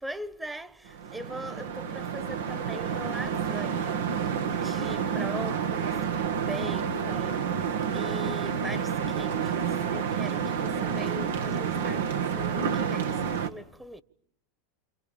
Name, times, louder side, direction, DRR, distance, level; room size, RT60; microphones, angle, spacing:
voice 1, 0.0-7.5 7.9-14.0, right 1 dB, 10° right, 1.4 m, -41 dB
sound 1, 0.9-13.5, right 7 dB, 80° right, 1.9 m, -29 dB
28.5 x 26.5 x 7.3 m
hypercardioid pair, 95°, 0 cm